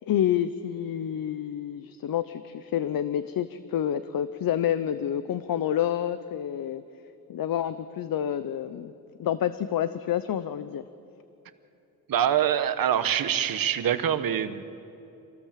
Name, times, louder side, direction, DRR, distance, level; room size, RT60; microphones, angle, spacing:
voice 1, 0.1-6.8 7.3-8.9 9.2-10.9, left 10 dB, 70° left, 13 dB, 0.8 m, -28 dB
voice 2, 12.1-14.6, right 9 dB, 70° right, 11 dB, 1.1 m, -25 dB
26.5 x 18.0 x 7.4 m, 2.9 s
cardioid pair, 120°, 36 cm